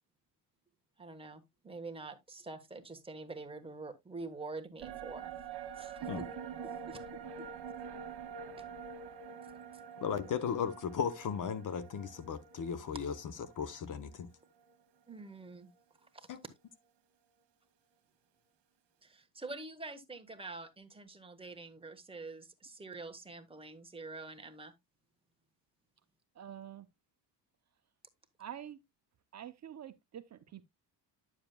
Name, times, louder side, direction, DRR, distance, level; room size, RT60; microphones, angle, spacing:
voice 1, 1.0-5.3 5.7-6.2 6.6-7.0 7.4-7.5 15.1-15.7 16.1-16.3 19.0-24.7, right 3 dB, 15° right, 1.2 m, -46 dB
sound 1, 4.8-14.3 14.6-14.7, right 7 dB, 65° right, 1.5 m, -46 dB
voice 2, 10.0-13.1 13.6-14.3 16.3-16.4, left 7 dB, 45° left, 0.9 m, -36 dB
voice 3, 26.3-26.9 28.4-28.8 29.3-30.7, right 10 dB, 40° right, 0.7 m, -47 dB
10.5 x 7.2 x 2.2 m
cardioid pair, 125°, 43 cm